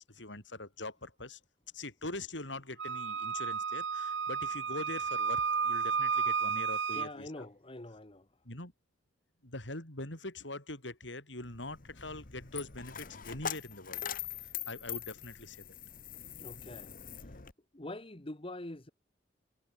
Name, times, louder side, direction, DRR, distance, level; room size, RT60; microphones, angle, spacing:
voice 1, 0.1-1.4 1.7-7.5 8.4-8.7 9.4-14.0 14.7-15.7, left 2 dB, 80° left, 7.2 m, -43 dB
Wind instrument woodwind instrument, 2.8-7.1, right 6 dB, 80° right, 1.1 m, -32 dB
voice 2, 6.9-8.3 16.4-16.9 17.7-18.9, left 1 dB, 30° left, 1.7 m, -44 dB
Coin (dropping), 11.4-17.5, left 9 dB, 50° left, 1.3 m, -43 dB
head